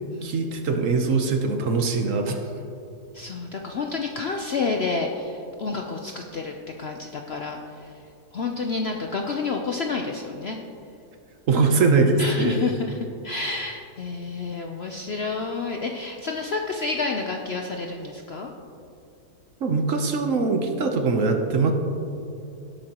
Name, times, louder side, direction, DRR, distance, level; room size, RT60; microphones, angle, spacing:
voice 1, 0.2-2.4 11.5-12.6 19.6-21.7, right 4 dB, 55° right, 4 dB, 1.1 m, -22 dB
voice 2, 3.1-7.9 8.3-10.6 12.2-13.0 13.2-18.5, left 4 dB, 60° left, 2 dB, 0.7 m, -29 dB
17.5 x 8.5 x 2.9 m, 2.6 s
omnidirectional pair, 1.7 m